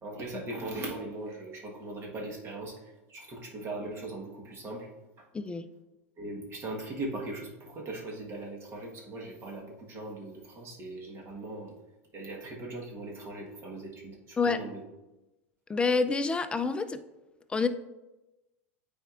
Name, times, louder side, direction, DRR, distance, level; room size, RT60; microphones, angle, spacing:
voice 1, 0.0-4.9 6.2-11.7 12.1-14.8, right 2 dB, 35° right, -1 dB, 1.4 m, -39 dB
voice 2, 5.3-5.7 14.4-14.6 15.7-17.0 17.5-17.7, left 4 dB, 15° left, 10 dB, 0.4 m, -27 dB
9.0 x 4.3 x 2.5 m, 1.0 s
hypercardioid pair, 105°, 7 cm